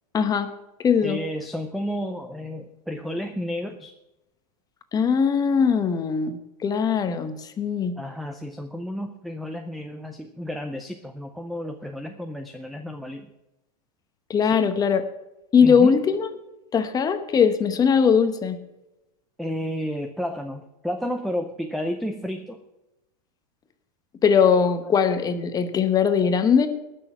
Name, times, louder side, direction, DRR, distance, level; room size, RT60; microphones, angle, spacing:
voice 1, 0.1-0.5 0.8-1.2 4.9-8.0 14.3-15.0 15.5-16.3 16.7-18.6 24.2-26.7, left 6 dB, 20° left, 9 dB, 1.0 m, -20 dB
voice 2, 1.0-3.9 8.0-13.3 14.4-14.6 15.6-16.0 19.4-22.6, equal, ahead, 7 dB, 0.5 m, -31 dB
19.0 x 6.4 x 5.7 m, 0.95 s
supercardioid pair, 145°, 21 cm